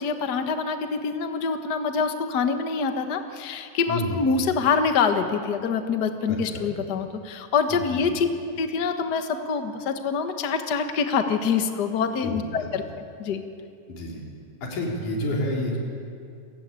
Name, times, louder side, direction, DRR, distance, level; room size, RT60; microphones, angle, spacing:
voice 1, 0.0-8.3 8.6-12.8 13.2-13.4, left 5 dB, 45° left, 7 dB, 1.4 m, -25 dB
voice 2, 3.9-4.3 6.3-6.6 7.7-8.0 12.2-12.7 13.9-14.2 14.6-15.8, left 1 dB, 75° left, -2 dB, 5.3 m, -29 dB
28.5 x 15.5 x 9.0 m, 2.4 s
omnidirectional pair, 3.6 m